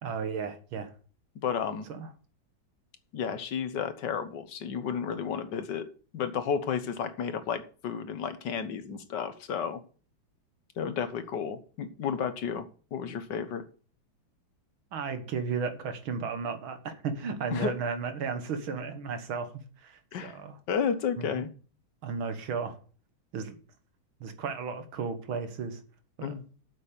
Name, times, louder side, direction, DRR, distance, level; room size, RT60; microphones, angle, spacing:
voice 1, 0.0-0.9 1.9-2.1 14.9-19.5 19.8-20.6 21.2-21.5 22.0-22.8 23.3-23.6 24.2-25.8 26.2-26.4, right 5 dB, 75° right, 8 dB, 2.2 m, -34 dB
voice 2, 1.3-1.9 3.1-5.8 6.1-9.8 10.8-13.6 17.5-17.7 20.1-20.4 20.7-21.5 26.2-26.4, left 7 dB, 60° left, 11 dB, 1.6 m, -32 dB
8.7 x 7.4 x 6.7 m, 0.40 s
omnidirectional pair, 2.2 m